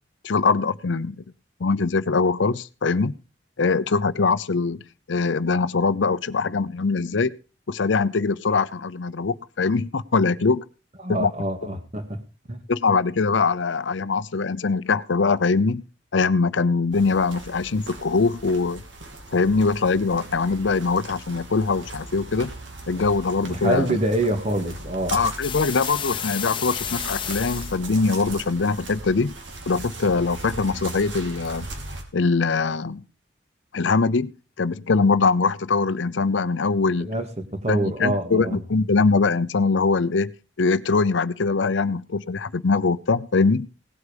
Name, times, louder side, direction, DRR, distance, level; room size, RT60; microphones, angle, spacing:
voice 1, 0.2-1.2 1.6-3.1 3.6-4.8 5.1-7.3 7.7-10.6 11.1-11.3 12.7-15.8 16.1-18.8 19.3-22.5 22.9-24.0 25.1-29.3 29.7-31.7 32.1-33.0 33.7-34.3 34.6-37.1 37.7-40.3 40.6-43.7, left 4 dB, 80° left, 16 dB, 0.7 m, -22 dB
voice 2, 11.0-12.2 12.5-12.6 23.5-25.2 37.0-38.6, right 1 dB, 35° right, 6 dB, 2.2 m, -26 dB
sound 1, 16.9-32.0, right 2 dB, 85° right, 3.2 m, -38 dB
sound 2, 25.4-27.8, left 8 dB, 25° left, 1.0 m, -31 dB
17.5 x 8.2 x 5.1 m, 0.33 s
head